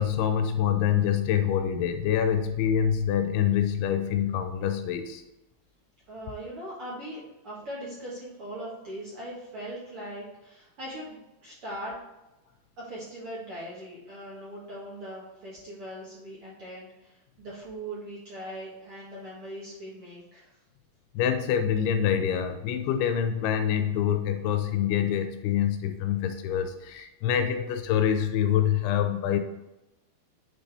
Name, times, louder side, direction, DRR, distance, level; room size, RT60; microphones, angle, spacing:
voice 1, 0.0-5.2 21.1-29.4, left 9 dB, 85° left, 7 dB, 2.6 m, -26 dB
voice 2, 6.1-11.9 12.8-20.5, right 1 dB, 60° right, -7 dB, 1.5 m, -40 dB
8.6 x 4.1 x 3.4 m, 0.97 s
omnidirectional pair, 4.5 m